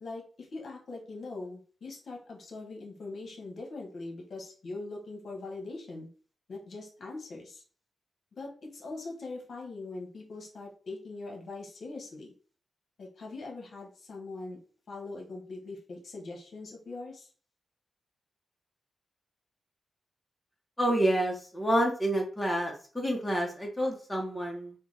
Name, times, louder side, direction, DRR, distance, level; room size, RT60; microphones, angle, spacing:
voice 1, 0.0-6.1 6.5-7.6 8.4-12.3 13.0-14.6 14.9-17.3, left 3 dB, 60° left, 0 dB, 0.9 m, -42 dB
voice 2, 20.8-24.7, right 1 dB, 10° left, 0 dB, 0.9 m, -28 dB
3.3 x 2.2 x 3.2 m, 0.41 s
cardioid pair, 90°, 0 cm